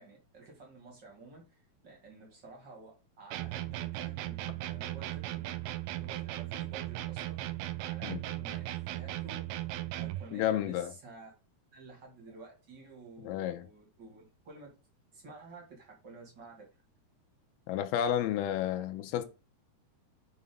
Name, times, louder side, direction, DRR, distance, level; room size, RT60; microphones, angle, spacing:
voice 1, 0.0-5.5 6.0-7.4 7.8-11.3 11.7-14.8 15.1-16.8, right 3 dB, 35° right, 1.9 m, -51 dB
sound 1, 3.3-10.3, right 15 dB, 85° right, 2.6 m, -37 dB
voice 2, 10.3-10.9 13.3-13.6 17.7-19.3, left 10 dB, 85° left, 2.5 m, -31 dB
7.1 x 3.9 x 5.2 m
omnidirectional pair, 4.5 m